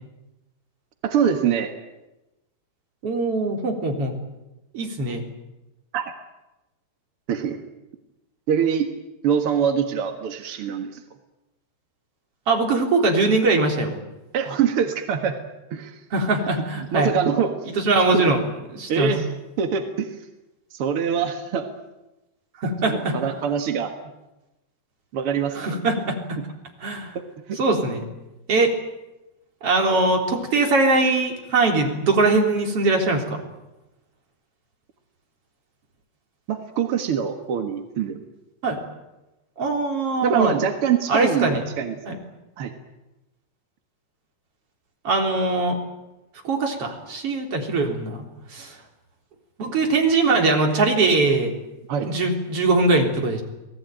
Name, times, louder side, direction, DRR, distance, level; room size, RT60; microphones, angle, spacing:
voice 1, 1.0-1.7 5.9-6.0 7.3-7.6 8.5-8.9 9.2-11.0 14.3-15.3 15.7-16.0 16.8-17.7 18.1-18.3 18.9-19.3 19.6-20.1 20.7-21.7 22.8-23.9 25.1-25.8 27.1-27.6 36.5-38.2 40.2-42.0 42.6-42.7 51.9-52.1, right 7 dB, 55° right, 6 dB, 1.6 m, -24 dB
voice 2, 3.0-4.1 4.7-5.2 12.5-13.9 16.1-17.1 17.8-18.4 18.7-19.1 22.6-23.1 25.5-26.4 26.8-27.1 27.6-28.0 28.5-28.7 29.6-33.4 38.6-38.8 39.6-40.5 41.1-41.6 42.1-42.2 45.0-45.8 46.4-48.2 48.5-48.8 49.6-51.5 52.0-53.4, right 3 dB, 35° right, 2 dB, 4.3 m, -21 dB
29.5 x 19.5 x 9.2 m, 1.0 s
omnidirectional pair, 4.8 m